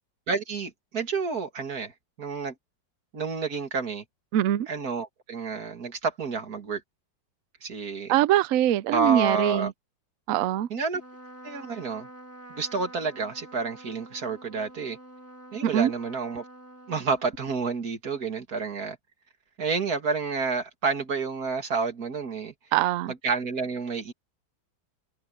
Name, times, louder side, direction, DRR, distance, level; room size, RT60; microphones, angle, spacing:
voice 1, 0.3-1.9 2.2-2.5 3.1-4.0 4.7-6.8 7.6-8.2 8.9-9.7 10.7-11.0 11.4-12.1 12.6-15.0 15.5-16.4 16.9-19.0 19.6-22.5 23.1-24.1, right 4 dB, 50° right, 2.7 m, -29 dB
voice 2, 4.3-4.7 8.1-9.7 10.3-10.7 15.6-15.9 22.7-23.1, right 12 dB, 80° right, 0.7 m, -23 dB
Trumpet, 10.9-17.8, right 1 dB, 10° left, 1.5 m, -47 dB
omnidirectional pair, 2.1 m